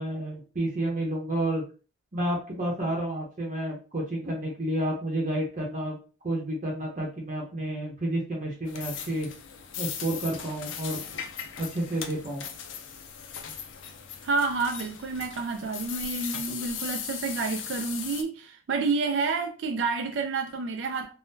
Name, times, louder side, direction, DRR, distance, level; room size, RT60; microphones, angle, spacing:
voice 1, 0.0-1.6 2.1-6.0 6.2-9.3 9.8-11.0 11.6-12.4, right 1 dB, 40° right, 0.7 m, -30 dB
sound 1, 8.7-18.2, left 7 dB, 70° left, 0.5 m, -38 dB
voice 2, 14.2-21.2, right 4 dB, 65° right, 0.4 m, -29 dB
3.5 x 2.1 x 2.6 m
head